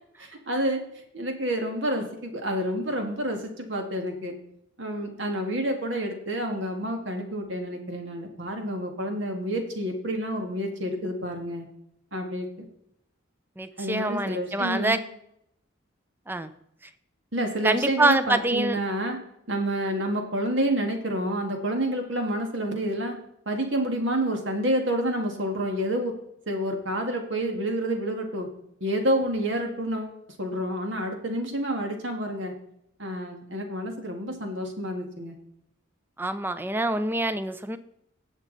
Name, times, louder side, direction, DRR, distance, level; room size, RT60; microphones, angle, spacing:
voice 1, 0.2-0.8 1.1-4.3 4.8-11.7 12.1-12.7 13.8-15.0 17.3-19.2 19.5-23.2 23.5-26.1 26.5-28.5 28.8-32.5 33.0-35.4, right 1 dB, 65° right, 4 dB, 2.1 m, -29 dB
voice 2, 13.6-15.0 16.3-16.5 17.6-18.8 36.2-37.8, right 2 dB, 10° right, 12 dB, 0.6 m, -25 dB
17.5 x 7.4 x 4.1 m, 0.76 s
head